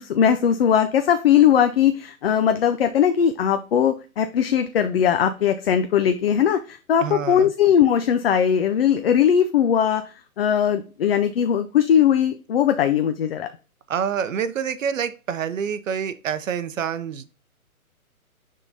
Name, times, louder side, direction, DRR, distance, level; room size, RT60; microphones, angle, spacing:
voice 1, 0.0-10.0 10.4-13.5, left 9 dB, 45° left, 9 dB, 0.5 m, -19 dB
voice 2, 7.0-7.5 13.9-17.4, right 7 dB, 60° right, 13 dB, 0.6 m, -27 dB
9.6 x 3.7 x 2.7 m, 0.35 s
hypercardioid pair, 140°, 43 cm